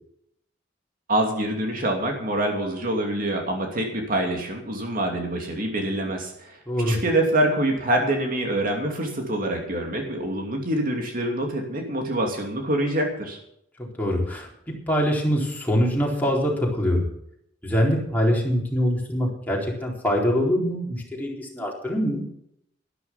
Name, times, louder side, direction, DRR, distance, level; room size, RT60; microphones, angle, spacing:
voice 1, 1.1-6.6 6.9-13.4, right 1 dB, 50° right, 2 dB, 2.7 m, -25 dB
voice 2, 6.7-7.0 13.8-17.0 17.6-22.2, equal, 10° left, -3 dB, 4.1 m, -24 dB
12.5 x 12.0 x 5.9 m, 0.73 s
head